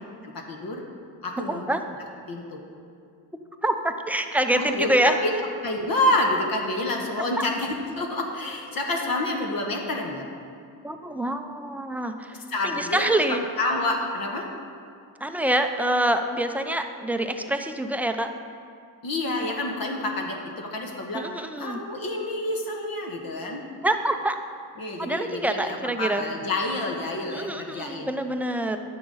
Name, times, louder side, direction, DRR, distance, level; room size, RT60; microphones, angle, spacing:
voice 1, 0.2-0.8 1.2-1.6 2.3-2.6 4.6-5.0 5.2-5.3 5.6-10.3 12.5-13.1 13.6-14.5 19.0-21.2 21.6-23.6 24.8-28.1, left 2 dB, 55° left, 1 dB, 1.3 m, -28 dB
voice 2, 1.5-1.8 3.6-5.4 7.4-7.5 10.8-13.4 15.2-18.3 21.1-21.8 23.8-24.4 25.0-26.2 27.3-28.8, right 1 dB, 5° right, 6 dB, 0.6 m, -26 dB
10.5 x 6.7 x 4.0 m, 2.3 s
supercardioid pair, 70°, 42 cm